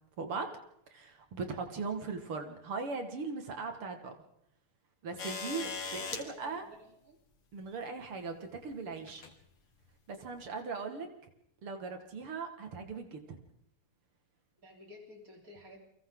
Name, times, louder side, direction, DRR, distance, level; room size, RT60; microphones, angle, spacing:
voice 1, 0.2-0.5 0.9-4.1 5.0-6.7 7.5-9.2 10.1-11.1 11.6-13.4, right 4 dB, 80° right, 5 dB, 3.0 m, -39 dB
sound 1, 5.2-6.2 7.6-7.7 9.1-9.3 10.3-10.4, left 5 dB, 75° left, 2.9 m, -39 dB
voice 2, 6.0-7.2 10.9-11.0 14.6-15.8, left 1 dB, 40° right, 0 dB, 4.7 m, -53 dB
29.5 x 23.5 x 4.0 m, 0.72 s
omnidirectional pair, 2.4 m